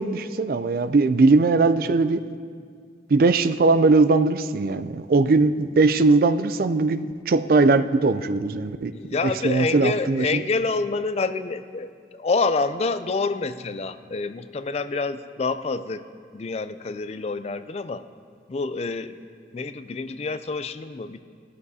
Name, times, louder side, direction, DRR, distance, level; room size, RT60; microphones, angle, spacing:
voice 1, 0.0-2.2 3.1-8.9 9.2-10.4, right 3 dB, 50° right, 12 dB, 0.4 m, -20 dB
voice 2, 8.9-11.9 12.2-16.0 16.3-18.0 18.5-19.1 19.5-21.2, left 3 dB, 35° left, 12 dB, 0.3 m, -27 dB
15.5 x 13.0 x 2.8 m, 2.1 s
head